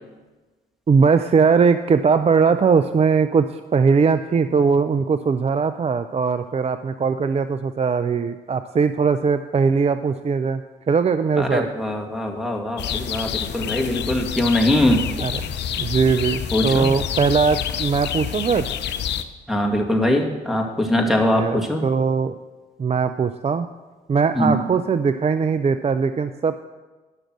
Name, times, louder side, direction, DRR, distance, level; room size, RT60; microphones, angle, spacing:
voice 1, 0.9-3.5 3.7-11.7 15.2-15.4 15.8-18.7 21.1-22.4 22.8-23.7 24.1-26.6, right 5 dB, 35° right, 11 dB, 0.5 m, -20 dB
voice 2, 11.4-15.0 16.5-16.9 19.5-21.8 24.4-24.6, left 1 dB, ahead, 2 dB, 2.0 m, -22 dB
sound 1, 12.8-19.2, left 9 dB, 65° left, 0.6 m, -27 dB
10.5 x 6.4 x 6.2 m, 1.3 s
supercardioid pair, 50°, 19 cm